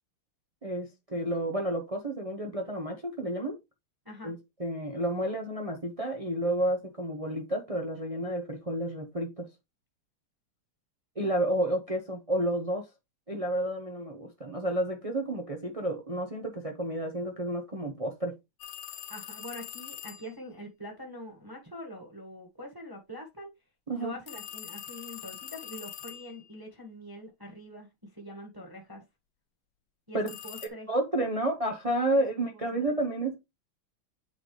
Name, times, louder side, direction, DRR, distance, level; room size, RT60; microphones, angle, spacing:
voice 1, 0.6-3.6 4.2-4.3 4.6-9.5 11.2-12.8 13.3-18.4 23.9-24.1 30.1-30.3 30.9-33.4, right 1 dB, 60° right, 0.3 m, -31 dB
sound 1, 18.6-20.3 24.3-26.5 30.3-30.7, left 11 dB, 65° left, 1.2 m, -43 dB
voice 2, 19.1-23.5 23.9-29.0 30.1-30.9 32.1-32.9, equal, 10° right, 1.3 m, -44 dB
8.7 x 4.1 x 3.2 m
omnidirectional pair, 2.4 m